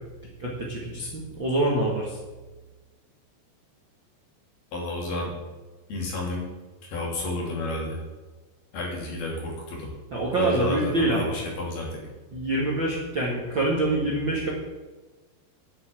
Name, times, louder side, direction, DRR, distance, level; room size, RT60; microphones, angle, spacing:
voice 1, 0.4-2.2 10.1-11.3 12.3-14.5, right 2 dB, 45° right, -4 dB, 1.7 m, -25 dB
voice 2, 4.7-5.3 5.9-6.4 6.8-8.0 8.7-9.9 10.4-12.0, left 2 dB, 65° left, -2 dB, 4.8 m, -31 dB
9.5 x 7.7 x 9.1 m, 1.2 s
omnidirectional pair, 5.0 m